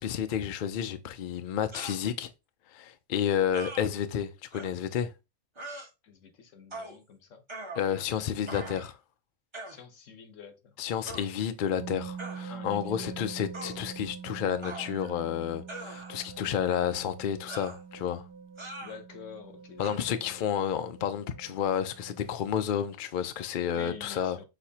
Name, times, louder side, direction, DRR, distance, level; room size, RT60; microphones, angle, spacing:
voice 1, 0.0-2.3 2.7-5.1 7.8-9.0 10.8-18.2 19.8-24.4, left 9 dB, 60° left, 0.5 m, -31 dB
sound 1, 1.7-2.0 3.5-3.9 4.5-4.7 5.6-5.9 6.7-7.0 7.5-8.1 8.5-8.9 9.5-9.8 11.1-11.3 12.2-12.5 13.5-13.8 14.6-15.2 15.7-16.3 17.5-17.8 18.6-19.0 19.8-20.0, right 2 dB, 25° right, 0.9 m, -42 dB
voice 2, 6.0-7.4 9.6-10.8 12.5-13.3 18.8-20.0 20.4-20.5 23.7-24.5, left 6 dB, 75° left, 1.2 m, -48 dB
sound 2, 11.8-22.3, right 6 dB, 55° right, 0.9 m, -44 dB
6.1 x 2.8 x 2.8 m
omnidirectional pair, 1.3 m